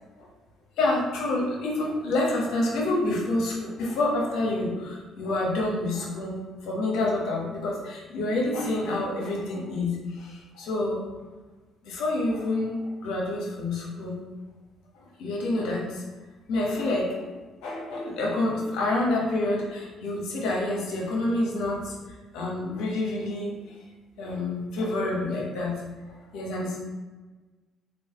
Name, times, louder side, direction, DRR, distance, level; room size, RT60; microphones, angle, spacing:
voice 1, 0.8-6.4 6.6-11.0 11.8-12.8 13.0-14.2 15.2-16.0 16.5-17.3 17.6-23.6 24.2-25.8 26.3-26.8, left 2 dB, 75° left, -2 dB, 1.0 m, -28 dB
3.3 x 2.5 x 3.5 m, 1.3 s
supercardioid pair, 65°, 0 cm